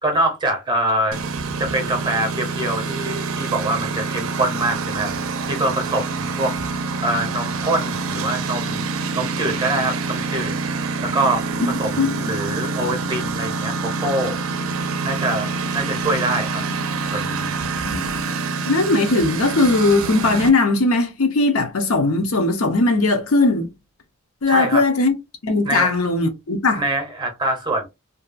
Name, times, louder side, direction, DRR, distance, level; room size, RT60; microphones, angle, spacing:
voice 1, 0.0-1.2 1.6-5.1 5.5-6.5 7.0-8.8 9.1-10.5 11.0-14.7 15.0-16.6 17.1-17.5 24.5-24.9 25.6-25.9 26.8-27.9, right 2 dB, 20° right, 0.6 m, -24 dB
Engine, 1.1-20.5, right 4 dB, 70° right, 0.5 m, -26 dB
voice 2, 12.0-12.4 17.9-18.1 18.7-23.7 24.4-25.1 25.4-26.8, left 3 dB, 75° left, 0.7 m, -19 dB
2.7 x 2.2 x 2.4 m
head